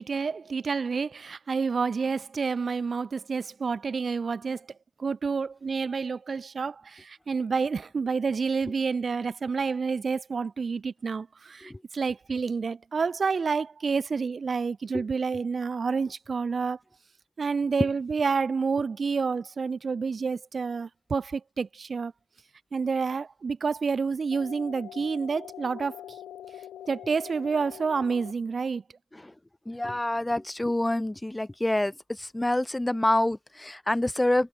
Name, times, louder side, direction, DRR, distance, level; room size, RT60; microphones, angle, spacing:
voice 1, 0.0-4.7 5.0-16.8 17.4-22.1 22.7-26.0 26.9-28.8, right 5 dB, 55° right, 3.3 m, -29 dB
sound 1, 24.3-28.3, left 11 dB, 90° left, 6.9 m, -44 dB
voice 2, 29.7-34.5, left 1 dB, 15° left, 3.6 m, -27 dB
supercardioid pair, 50°, 0 cm